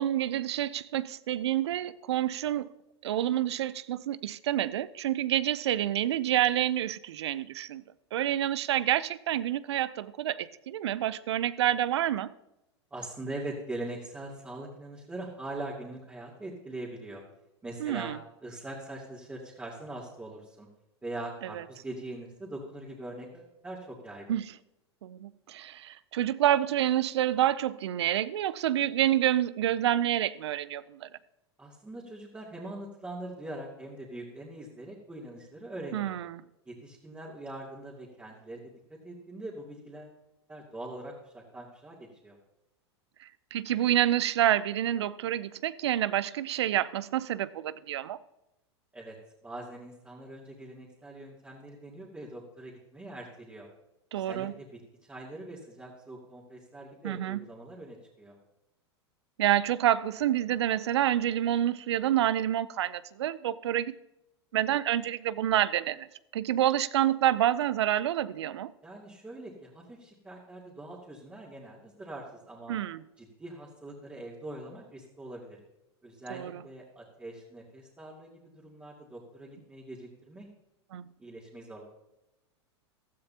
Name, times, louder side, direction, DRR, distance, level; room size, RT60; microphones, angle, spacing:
voice 1, 0.0-2.7 3.0-7.8 8.1-12.3 17.8-18.2 24.3-24.5 25.0-31.1 35.9-36.4 43.5-48.2 54.1-54.5 57.0-57.4 59.4-63.9 64.5-66.1 66.3-68.7 72.7-73.0 76.3-76.6 80.9-81.0, right 12 dB, 75° right, 0.6 m, -28 dB
voice 2, 12.9-17.2 17.6-18.1 18.4-20.7 21.0-24.3 31.6-36.2 36.7-40.2 40.5-42.4 48.9-49.2 49.4-53.7 54.1-58.4 68.8-72.8 73.2-75.6 76.0-80.5 81.2-81.8, right 2 dB, 10° right, 2.8 m, -42 dB
15.5 x 13.5 x 2.9 m
hypercardioid pair, 100°, 14 cm